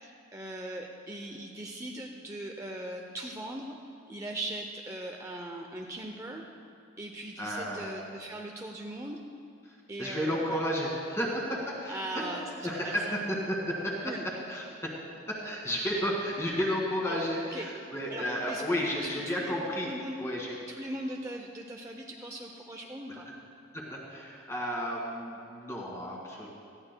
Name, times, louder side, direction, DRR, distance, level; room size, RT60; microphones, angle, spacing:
voice 1, 0.0-3.8 4.1-6.4 7.0-9.2 9.9-10.6 11.9-12.9 14.0-14.3 17.0-17.2 17.5-17.7 18.1-18.6 19.0-19.1 19.4-19.6 19.9-20.2 20.7-23.3, right 1 dB, 15° right, 1 dB, 0.5 m, -39 dB
voice 2, 7.4-8.0 9.6-12.2 12.6-14.9 15.3-19.9 20.2-20.6 23.7-26.5, equal, 15° left, -2 dB, 1.7 m, -32 dB
18.5 x 14.5 x 2.2 m, 2.4 s
head